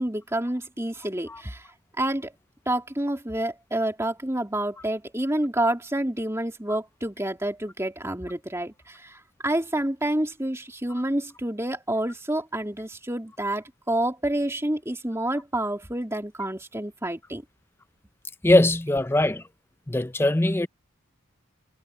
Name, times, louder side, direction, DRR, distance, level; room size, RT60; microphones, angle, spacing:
voice 1, 0.0-1.7 2.0-2.3 2.7-17.4, right 1 dB, 15° right, 2.7 m, -28 dB
voice 2, 18.4-19.4 19.9-20.7, left 1 dB, 10° left, 0.5 m, -20 dB
head